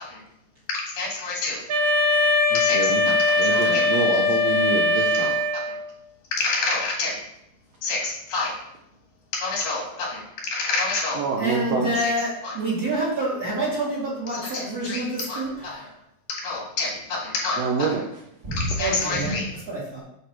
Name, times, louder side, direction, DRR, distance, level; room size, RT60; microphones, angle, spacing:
voice 1, 0.7-1.6 2.5-2.9 3.3-3.9 5.2-5.7 6.3-7.2 7.8-8.5 9.3-11.2 12.4-12.6 14.3-15.8 16.3-17.6 18.5-19.5, left 3 dB, 85° left, -1 dB, 3.3 m, -28 dB
Wind instrument woodwind instrument, 1.7-5.9, left 2 dB, 55° right, 2.8 m, -21 dB
voice 2, 2.5-5.3 9.9-10.1 11.1-12.0 13.4-13.6 13.8-13.9 17.6-18.2, right 5 dB, 80° right, -1 dB, 1.6 m, -27 dB
voice 3, 11.4-15.9 18.4-19.4 19.7-20.0, right 1 dB, 35° right, -6 dB, 1.9 m, -27 dB
8.6 x 3.2 x 4.6 m, 0.78 s
omnidirectional pair, 3.7 m